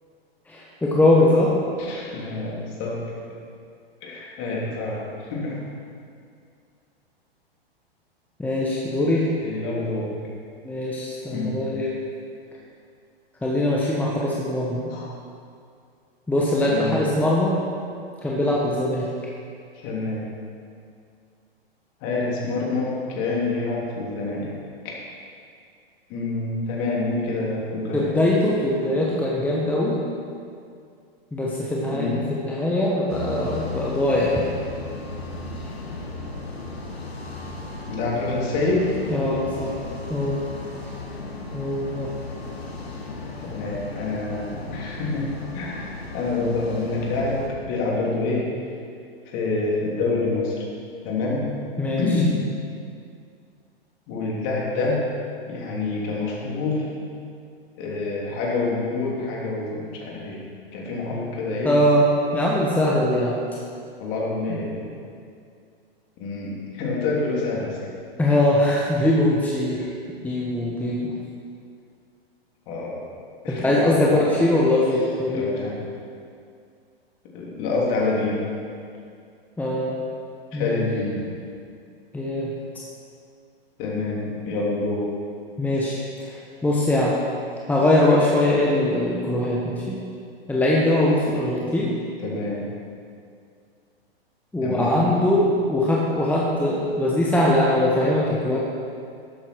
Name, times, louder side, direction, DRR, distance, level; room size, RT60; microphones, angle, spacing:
voice 1, 0.5-1.5 8.4-9.3 10.6-11.9 13.4-14.9 16.3-17.6 18.2-19.1 27.9-30.0 31.3-34.4 39.1-39.8 40.1-40.4 41.5-42.1 51.8-52.1 61.6-63.4 64.5-64.6 68.2-69.9 70.2-71.1 73.5-75.6 79.6-80.0 80.5-80.8 82.1-82.5 85.6-87.2 87.7-90.0 90.5-92.0 94.5-98.6, left 1 dB, 5° left, -4 dB, 1.3 m, -21 dB
voice 2, 1.8-3.0 4.0-5.0 5.3-5.6 9.4-10.1 11.3-11.6 14.9-15.1 16.7-17.0 19.8-20.2 22.0-24.5 24.8-24.9 26.1-28.1 31.9-32.2 34.8-34.9 37.9-38.9 43.4-45.3 45.5-47.4 47.7-48.5 49.3-50.6 51.0-51.5 52.0-52.3 54.1-55.0 55.5-57.0 57.8-60.4 60.7-61.7 64.0-64.9 66.2-67.8 72.7-72.9 73.4-73.6 73.9-74.1 75.3-75.8 77.3-78.4 80.5-81.4 83.8-85.1 92.2-92.6 94.6-95.1, left 3 dB, 40° left, -4 dB, 3.4 m, -27 dB
sound 1, 33.1-47.5, left 3 dB, 80° left, 1.7 m, -35 dB
12.5 x 9.0 x 4.7 m, 2.3 s
figure-of-eight pair, 110°, 30 cm